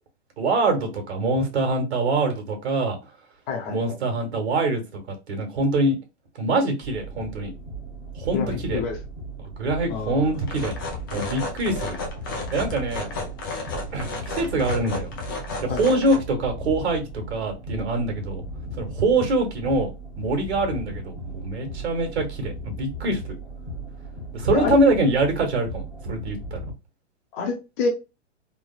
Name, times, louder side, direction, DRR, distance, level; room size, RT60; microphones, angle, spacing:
voice 1, 0.4-3.0 3.7-6.0 6.4-7.5 8.2-8.8 9.6-10.7 11.1-11.9 12.5-13.1 13.9-15.2 15.6-18.4 18.8-19.9 20.2-23.2 24.3-26.6, right 2 dB, 60° right, 4 dB, 1.3 m, -24 dB
voice 2, 3.5-4.0 8.3-9.0 9.9-10.4 15.7-16.0 24.5-24.8 27.3-27.9, left 4 dB, 40° left, 1 dB, 0.8 m, -28 dB
sound 1, 6.8-26.7, right 1 dB, 5° right, 0.9 m, -37 dB
sound 2, 10.3-16.2, left 3 dB, 20° left, 0.3 m, -33 dB
3.2 x 2.0 x 2.3 m, 0.27 s
hypercardioid pair, 145°, 36 cm